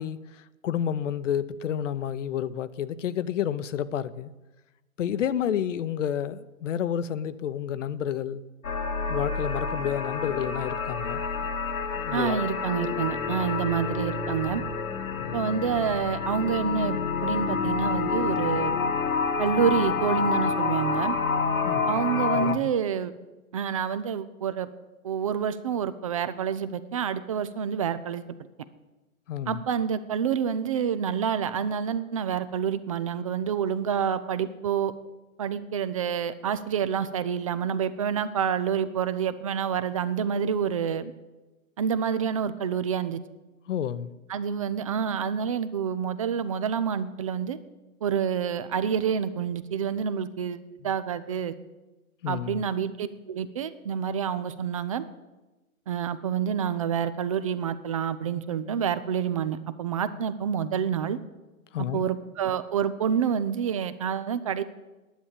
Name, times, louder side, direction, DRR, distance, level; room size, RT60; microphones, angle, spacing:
voice 1, 0.0-4.3 5.0-8.4 9.1-11.2 11.9-12.4 15.2-15.4 21.6-22.0 22.3-22.7 29.3-29.6 43.7-44.1 52.2-52.6 61.7-62.0, left 9 dB, 60° left, 15 dB, 0.8 m, -30 dB
sound 1, 8.6-22.5, left 5 dB, 75° left, 1.4 m, -28 dB
voice 2, 12.1-14.6 15.3-17.0 17.2-18.7 19.4-21.2 21.9-23.1 23.5-24.7 25.0-28.3 29.5-34.9 35.4-41.1 41.8-43.2 44.3-47.6 48.0-51.5 52.3-55.0 55.9-61.2 61.8-64.6, right 7 dB, 25° right, 14 dB, 0.4 m, -28 dB
10.5 x 8.4 x 8.8 m, 1.1 s
hypercardioid pair, 120°, 43 cm